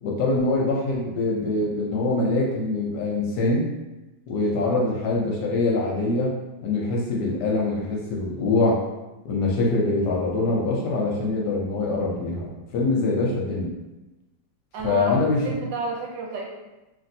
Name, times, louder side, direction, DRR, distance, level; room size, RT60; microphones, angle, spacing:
voice 1, 0.0-3.7 4.3-6.3 6.6-8.8 9.2-12.5 12.7-13.7 14.8-15.4, left 2 dB, 70° left, -2 dB, 1.1 m, -24 dB
voice 2, 14.7-15.2 15.4-16.4, right 3 dB, 75° right, -1 dB, 1.2 m, -31 dB
3.1 x 2.5 x 2.6 m, 1.0 s
omnidirectional pair, 2.0 m